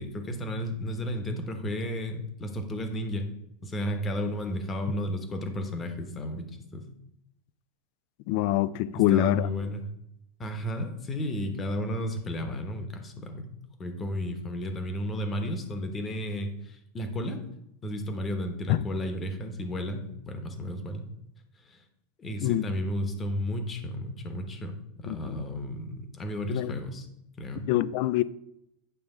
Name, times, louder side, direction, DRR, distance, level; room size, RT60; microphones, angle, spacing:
voice 1, 0.0-3.3 3.6-6.9 9.1-9.8 10.4-13.5 13.8-17.4 17.8-21.1 21.7-21.8 22.2-27.1 27.4-27.7, equal, 15° left, 1.0 m, -33 dB
voice 2, 8.3-9.5 18.7-18.8 22.4-22.7 25.1-25.4 26.5-26.7 27.7-28.2, left 13 dB, 50° left, 0.3 m, -25 dB
9.3 x 3.4 x 6.6 m
supercardioid pair, 160°, 0 cm